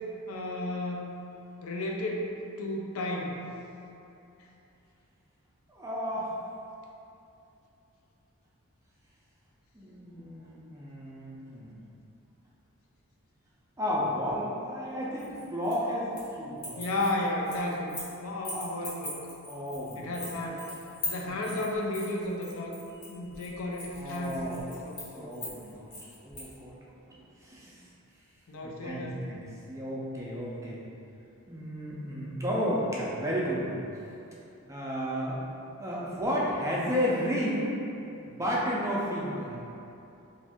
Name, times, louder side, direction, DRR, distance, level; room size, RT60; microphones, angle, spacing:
voice 1, 0.3-1.1 1.6-3.4 16.8-17.9 18.2-19.2 20.0-20.7 21.1-22.7 23.1-24.5 24.8-25.5 28.5-29.3, left 1 dB, 70° left, -1 dB, 0.4 m, -33 dB
voice 2, 5.7-6.3 9.7-11.8 13.8-16.9 18.5-18.6 19.5-20.3 21.2-21.4 23.9-24.7 25.1-25.9 26.2-26.8 27.1-27.9 28.6-30.8 31.5-33.9 34.7-35.4 35.8-37.7 38.3-39.6, equal, 15° right, -6 dB, 0.4 m, -32 dB
sound 1, 15.2-16.3 16.6-18.1 18.4-26.5, left 2 dB, 40° left, 1.0 m, -41 dB
2.6 x 2.5 x 3.4 m, 2.8 s
head